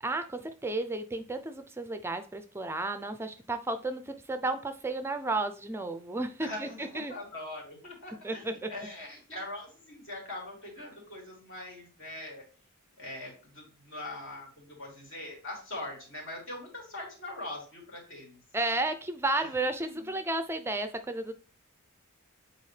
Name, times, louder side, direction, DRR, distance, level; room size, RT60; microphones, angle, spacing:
voice 1, 0.0-7.1 8.2-8.7 18.5-21.3, right 2 dB, 10° right, 9 dB, 0.4 m, -33 dB
voice 2, 6.4-12.4 13.0-18.4 19.4-20.2, left 1 dB, 60° left, -1 dB, 3.2 m, -42 dB
8.4 x 4.2 x 3.2 m, 0.40 s
head